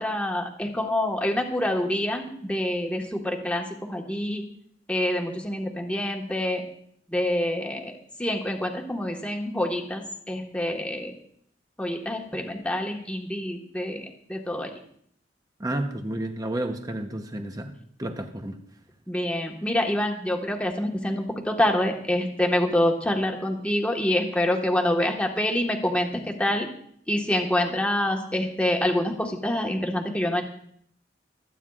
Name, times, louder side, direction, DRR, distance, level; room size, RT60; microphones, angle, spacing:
voice 1, 0.0-4.4 4.9-6.6 7.1-7.9 8.2-11.1 11.8-14.7 19.1-26.7 27.1-30.4, left 1 dB, 5° left, 1 dB, 1.4 m, -26 dB
voice 2, 15.6-17.7 18.0-18.6, right 1 dB, 20° right, 5 dB, 0.8 m, -31 dB
25.5 x 9.2 x 2.4 m, 0.66 s
head